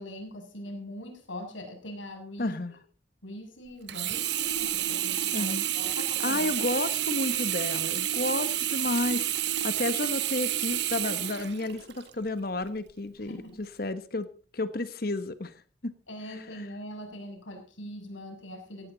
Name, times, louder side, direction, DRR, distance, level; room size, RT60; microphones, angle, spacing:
voice 1, 0.0-2.6 3.2-6.5 13.2-13.6 16.1-18.9, left 1 dB, 85° left, 3 dB, 6.8 m, -42 dB
voice 2, 2.4-2.8 5.3-5.6 6.2-9.3 9.6-13.3 13.6-14.3 14.5-15.6 15.8-15.9, left 2 dB, 50° left, 13 dB, 1.3 m, -31 dB
Sink (filling or washing), 3.9-12.1 12.7-12.8, right 11 dB, 60° right, 1.2 m, -30 dB
17.5 x 16.5 x 4.0 m, 0.37 s
head